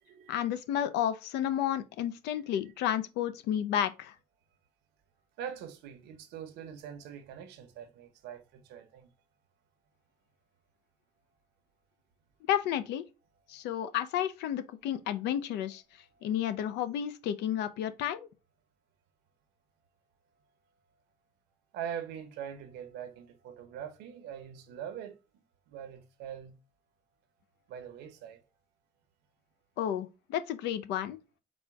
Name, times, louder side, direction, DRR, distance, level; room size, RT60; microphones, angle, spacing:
voice 1, 0.3-4.1 12.5-13.0 13.5-15.8 16.2-18.3 29.8-31.2, left 10 dB, 85° left, 0.5 m, -31 dB
voice 2, 5.4-9.1 16.1-16.3 21.7-25.2 25.7-26.5 27.7-28.4, right 8 dB, 85° right, 0.9 m, -43 dB
4.3 x 2.2 x 4.6 m
cardioid pair, 110°, 17 cm